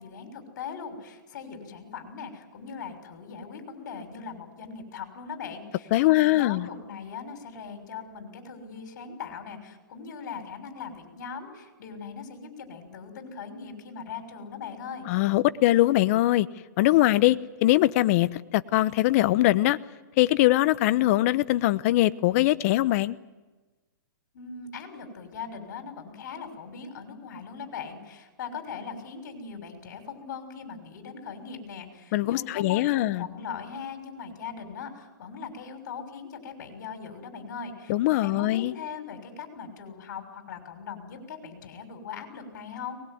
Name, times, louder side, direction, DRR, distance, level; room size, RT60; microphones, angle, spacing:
voice 1, 0.0-15.1 24.3-37.9 38.2-43.0, left 6 dB, 60° left, 6 dB, 6.2 m, -40 dB
voice 2, 5.9-6.7 15.1-16.5 16.8-19.8 20.2-23.2 32.1-33.3 37.9-38.7, left 16 dB, 45° left, 15 dB, 1.0 m, -22 dB
23.0 x 20.5 x 9.5 m, 1.2 s
hypercardioid pair, 140°, 11 cm